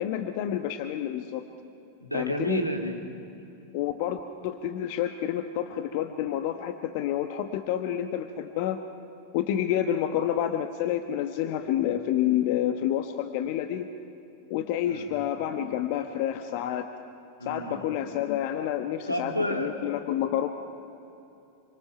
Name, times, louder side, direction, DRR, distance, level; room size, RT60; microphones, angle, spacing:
voice 1, 0.0-1.4 2.1-2.6 3.7-8.8 9.3-13.9 14.5-16.9 17.4-20.5, left 11 dB, 45° left, 8 dB, 1.0 m, -29 dB
voice 2, 2.0-3.0 14.9-15.1 17.4-17.8 19.1-19.7, equal, 90° left, 3 dB, 2.3 m, -30 dB
27.5 x 25.0 x 5.8 m, 2.8 s
figure-of-eight pair, 90°, 0 cm